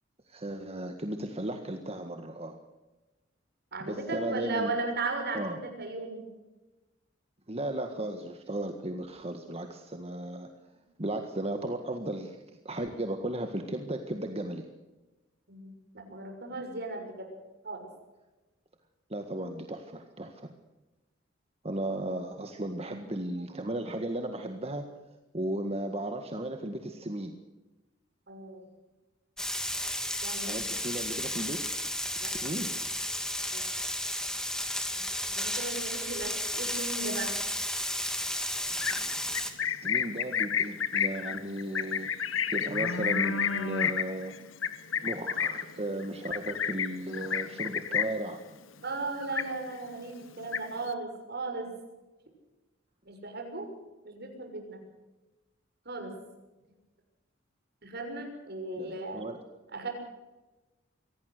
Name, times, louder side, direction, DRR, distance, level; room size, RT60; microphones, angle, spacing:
voice 1, 0.3-2.6 3.8-4.7 5.3-5.6 7.5-10.5 11.0-14.7 19.1-20.5 21.6-24.8 25.3-27.4 30.4-31.6 32.2-32.7 39.6-42.1 42.5-44.3 45.0-48.4 58.8-59.4, right 1 dB, 30° right, 5 dB, 1.7 m, -35 dB
voice 2, 3.7-6.2 15.5-17.3 17.6-17.9 22.8-23.0 28.3-28.6 30.2-30.6 32.2-32.3 33.5-33.7 34.9-37.3 48.8-51.7 53.0-53.6 54.0-54.8 55.8-56.1 57.8-59.3 59.7-59.9, right 3 dB, 55° right, 3 dB, 6.6 m, -36 dB
Frying (food), 29.4-39.5, left 1 dB, 5° left, 2.5 m, -33 dB
Livestock farm animals working animals, 38.7-48.3 48.6-49.0 49.2-49.9 50.2-50.9, left 7 dB, 85° left, 1.4 m, -31 dB
24.5 x 17.5 x 6.7 m, 1.1 s
head